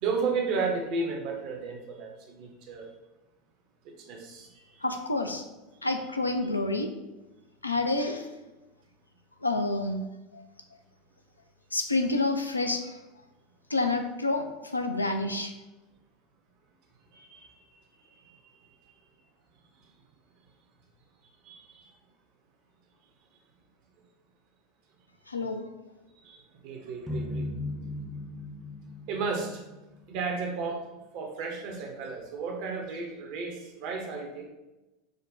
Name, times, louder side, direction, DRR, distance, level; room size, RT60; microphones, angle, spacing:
voice 1, 0.0-2.9 4.1-4.6 17.1-17.9 18.2-18.4 21.4-21.9 26.2-27.5 29.1-29.6 30.1-30.8 31.1-34.4, right 4 dB, 50° right, 2 dB, 0.7 m, -33 dB
voice 2, 4.8-5.4 5.8-6.9 7.6-8.3 9.4-10.1 10.3-10.4 11.7-13.0 13.7-15.5 25.3-25.7, left 2 dB, 85° left, 5 dB, 0.3 m, -28 dB
sound 1, 27.1-30.3, left 1 dB, 15° right, 0.6 m, -37 dB
4.9 x 2.2 x 2.6 m, 1.0 s
figure-of-eight pair, 80°, 0 cm